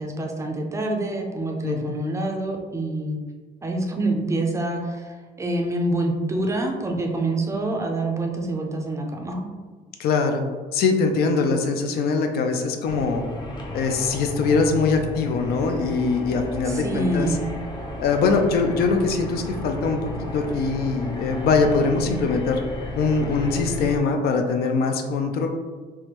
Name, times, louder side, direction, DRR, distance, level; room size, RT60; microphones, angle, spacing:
voice 1, 0.0-3.2 3.6-9.5 16.7-17.4, right 2 dB, 15° right, 2 dB, 0.4 m, -26 dB
voice 2, 1.6-1.9 10.0-10.5 10.7-13.2 13.7-17.4 18.0-22.6 23.0-25.5, left 4 dB, 65° left, 5 dB, 0.4 m, -22 dB
sound 1, 12.8-24.0, left 1 dB, 25° left, 0.6 m, -33 dB
3.4 x 2.1 x 2.9 m, 1.4 s
cardioid pair, 110°, 17 cm